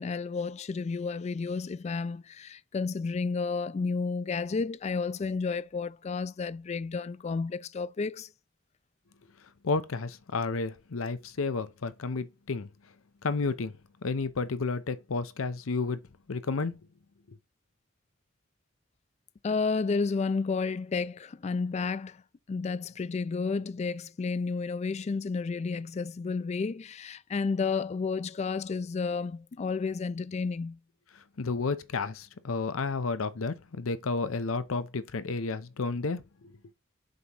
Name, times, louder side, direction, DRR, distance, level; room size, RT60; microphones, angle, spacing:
voice 1, 0.0-8.3 19.4-22.2 22.5-30.8, left 4 dB, 35° left, 0.3 m, -31 dB
voice 2, 9.6-12.7 13.2-13.8 14.0-16.0 16.3-16.8 17.3-17.4 31.1-36.5, left 4 dB, 90° left, 0.7 m, -31 dB
7.6 x 3.0 x 5.4 m
head